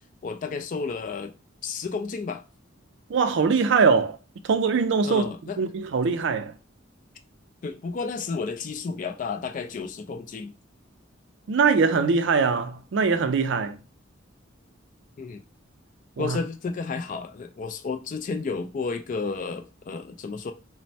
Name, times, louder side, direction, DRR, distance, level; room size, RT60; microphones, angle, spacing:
voice 1, 0.2-1.3 1.6-2.4 5.0-5.6 7.6-10.5 15.2-15.4 16.2-20.5, left 4 dB, 40° left, 0.3 m, -32 dB
voice 2, 3.1-4.2 4.4-6.5 11.5-13.8 16.2-16.4, right 5 dB, 65° right, 0.4 m, -22 dB
3.1 x 2.1 x 2.6 m
head